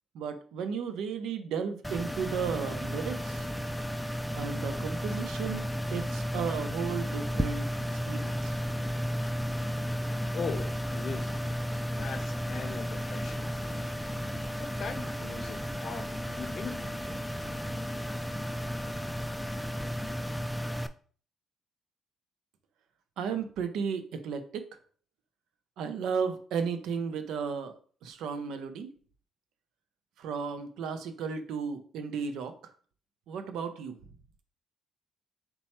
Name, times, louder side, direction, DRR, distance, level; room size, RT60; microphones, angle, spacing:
voice 1, 0.1-3.5 4.3-7.7 7.9-8.5 23.2-24.7 25.8-27.7 28.0-28.9 30.2-32.7 33.3-34.0, right 6 dB, 85° right, 8 dB, 0.6 m, -34 dB
sound 1, 1.8-20.9, equal, 5° left, 0.3 m, -33 dB
voice 2, 10.3-11.4 12.0-13.8 14.3-17.0, left 5 dB, 55° left, 9 dB, 0.6 m, -40 dB
4.1 x 2.3 x 4.2 m, 0.43 s
cardioid pair, 90°, 0 cm